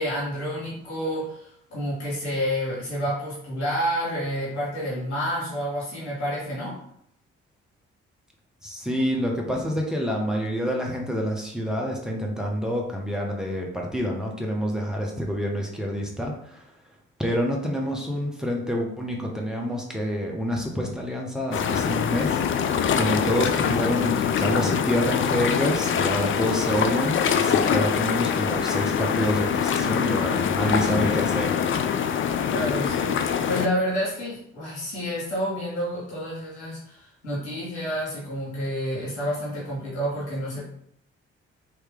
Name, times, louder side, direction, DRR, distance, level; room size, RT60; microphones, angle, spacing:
voice 1, 0.0-6.8 32.5-40.7, equal, 85° left, -7 dB, 1.4 m, -29 dB
voice 2, 8.6-16.6 17.2-31.5, equal, ahead, -1 dB, 1.0 m, -27 dB
sound 1, 21.5-33.7, left 7 dB, 40° left, 0.4 m, -24 dB
3.2 x 2.9 x 3.6 m, 0.70 s
figure-of-eight pair, 40°, 33 cm